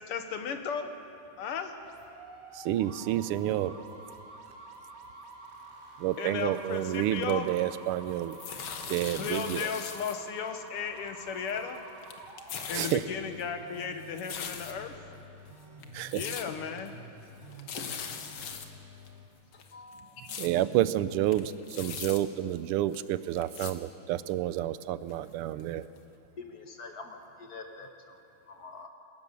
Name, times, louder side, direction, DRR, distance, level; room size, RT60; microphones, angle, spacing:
voice 1, 0.1-0.9 1.4-1.7 6.2-7.5 9.2-11.8 12.7-14.9 16.1-16.9 20.2-20.3, left 7 dB, 85° left, 7 dB, 2.2 m, -35 dB
sound 1, 1.8-19.3, right 2 dB, 40° right, 2.1 m, -49 dB
voice 2, 2.6-3.7 6.0-8.4 8.9-9.7 12.7-13.0 15.9-16.2 20.4-25.8, right 13 dB, 90° right, 15 dB, 1.6 m, -29 dB
sound 2, 6.6-7.8 8.1-10.2 10.4-10.5 11.2-11.8 12.0-13.0 13.4-14.9 15.5-15.6 15.8-16.5 16.8-16.9 17.2-17.3 17.5-18.7 19.1-19.2 19.5-20.5 20.9-21.0 21.2-22.2 22.9-23.0 23.4-23.7 24.3-24.4 25.1-25.2 25.6-25.7 26.0-26.1, left 7 dB, 70° left, 2.0 m, -40 dB
voice 3, 17.7-18.3 19.5-20.1 26.4-28.9, left 3 dB, 45° left, 4 dB, 1.9 m, -46 dB
20.5 x 18.5 x 6.8 m, 2.7 s
omnidirectional pair, 2.4 m